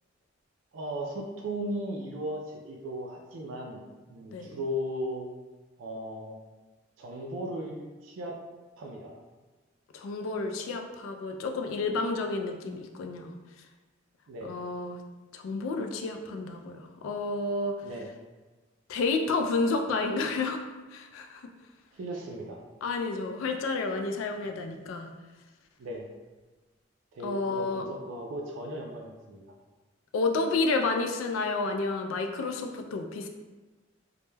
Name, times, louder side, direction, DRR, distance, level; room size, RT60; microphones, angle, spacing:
voice 1, 0.7-5.3 5.8-6.4 7.0-8.4 8.8-9.1 14.3-14.6 17.8-18.1 21.9-22.6 25.8-26.1 27.1-29.4, equal, 70° right, 0 dB, 0.3 m, -36 dB
voice 2, 9.9-13.3 14.4-15.0 15.3-17.8 18.9-20.6 20.9-21.4 22.8-25.1 27.2-27.8 30.1-33.3, left 3 dB, 80° left, 5 dB, 0.3 m, -30 dB
2.1 x 2.0 x 3.1 m, 1.2 s
head